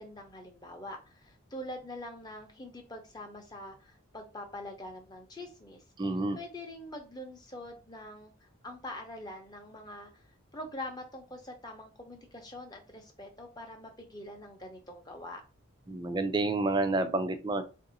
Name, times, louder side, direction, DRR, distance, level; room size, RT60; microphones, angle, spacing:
voice 1, 0.0-10.1 10.5-15.4, left 1 dB, 20° left, 3 dB, 0.7 m, -44 dB
voice 2, 6.0-6.4 15.9-17.6, right 2 dB, 20° right, 9 dB, 0.4 m, -29 dB
3.4 x 2.6 x 4.0 m, 0.31 s
head